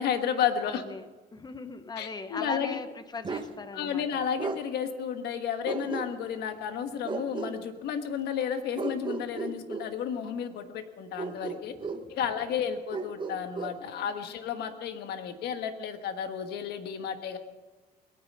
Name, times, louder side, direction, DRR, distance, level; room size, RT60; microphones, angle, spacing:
voice 1, 0.0-0.8 2.0-2.8 3.7-11.7 12.1-17.4, left 8 dB, 75° left, 8 dB, 1.4 m, -32 dB
voice 2, 0.6-2.9 3.1-4.2 11.7-12.1 13.8-14.1, left 3 dB, 25° left, 11 dB, 1.1 m, -40 dB
Bark, 3.2-3.5 4.4-4.6 5.6-6.4 7.0-7.6 8.7-9.9 11.2-12.1 12.9-13.8, right 4 dB, 30° right, 1.4 m, -35 dB
21.5 x 9.6 x 5.4 m, 1.2 s
cardioid pair, 110°, 17 cm